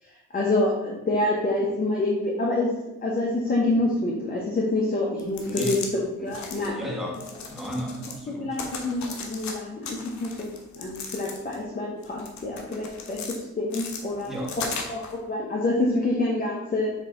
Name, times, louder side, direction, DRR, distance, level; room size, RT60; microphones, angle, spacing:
voice 1, 0.0-2.7 3.0-5.8 6.2-6.7 8.4-13.2 13.5-14.3 14.9-16.9, left 2 dB, 30° left, -3 dB, 1.2 m, -27 dB
sound 1, 5.2-5.9 6.3-6.7 7.1-8.2 8.5-9.5 9.8-11.6 12.0-13.4 13.7-15.1, left 5 dB, 65° left, 1.1 m, -37 dB
voice 2, 5.4-5.9 6.2-8.6 14.3-14.6, equal, ahead, -2 dB, 1.5 m, -34 dB
7.3 x 3.2 x 4.0 m, 0.99 s
cardioid pair, 90°, 30 cm